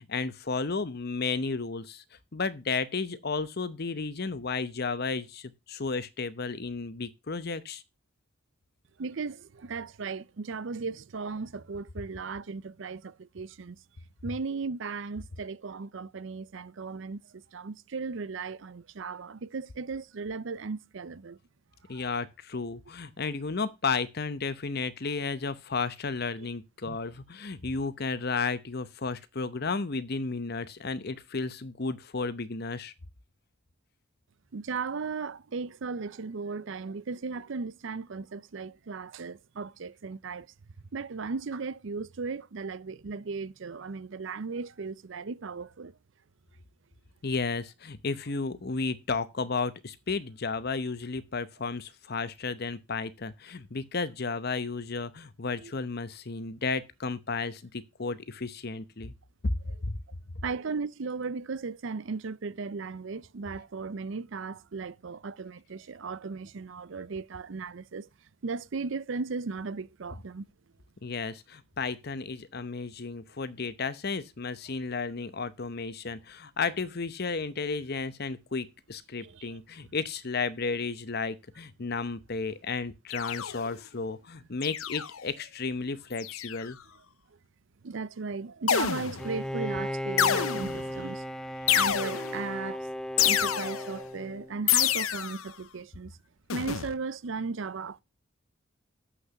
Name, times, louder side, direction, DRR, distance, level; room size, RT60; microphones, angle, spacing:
voice 1, 0.0-2.0 2.3-7.8 21.9-32.9 47.2-59.1 59.4-59.5 59.8-59.9 71.0-86.8, left 4 dB, 50° left, 0.8 m, -33 dB
voice 2, 9.0-13.8 14.2-21.4 21.9-22.1 26.8-27.0 34.5-40.5 40.9-45.9 55.6-55.7 60.4-68.1 68.4-70.4 79.2-79.6 87.8-91.2 91.7-92.9 93.2-96.2 96.5-98.0, right 4 dB, 60° right, 0.5 m, -36 dB
sound 1, 83.1-83.8 84.6-85.2 86.2-86.7 88.7-89.4 90.2-90.9 91.7-92.5 93.2-94.0 94.7-95.5 96.5-96.9, left 10 dB, 80° left, 0.7 m, -28 dB
Bowed string instrument, 89.2-94.8, equal, 5° left, 0.5 m, -36 dB
7.7 x 6.7 x 6.1 m
head